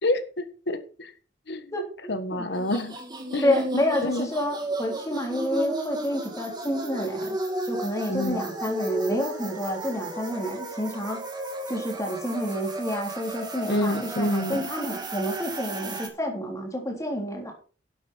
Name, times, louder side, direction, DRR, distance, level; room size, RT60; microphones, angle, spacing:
voice 1, 0.0-1.1 1.5-1.7 2.1-3.0 3.3-3.6 4.0-4.3 8.1-8.4 13.7-14.6, left 1 dB, 65° left, 10 dB, 1.5 m, -28 dB
voice 2, 1.7-2.7 3.4-7.4 7.6-11.2 11.7-17.5, equal, 15° left, 1 dB, 3.6 m, -29 dB
sound 1, 2.5-16.1, right 1 dB, 25° right, 2.1 m, -34 dB
11.5 x 8.1 x 4.4 m, 0.38 s
head